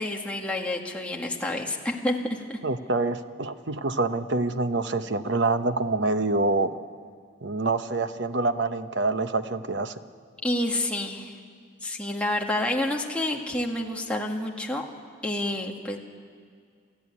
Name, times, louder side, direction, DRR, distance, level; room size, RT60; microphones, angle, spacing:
voice 1, 0.0-2.6 10.4-11.3 11.8-14.8 15.2-16.0, left 1 dB, 5° left, 0 dB, 1.8 m, -29 dB
voice 2, 2.6-6.8 7.4-10.0, right 3 dB, 60° right, 10 dB, 0.9 m, -26 dB
28.5 x 14.0 x 9.7 m, 2.1 s
head